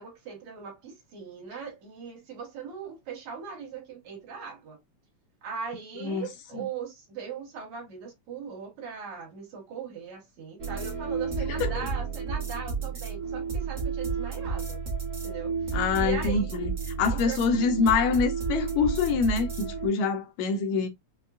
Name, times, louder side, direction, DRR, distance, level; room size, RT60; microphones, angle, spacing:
voice 1, 0.0-4.8 5.4-14.8 15.2-16.5 17.1-17.6, right 6 dB, 70° right, 2.5 m, -39 dB
sound 1, 10.6-19.9, right 5 dB, 50° right, 1.1 m, -31 dB
voice 2, 15.7-16.7 17.0-20.9, left 5 dB, 80° left, 1.8 m, -25 dB
5.3 x 2.2 x 2.3 m
omnidirectional pair, 3.4 m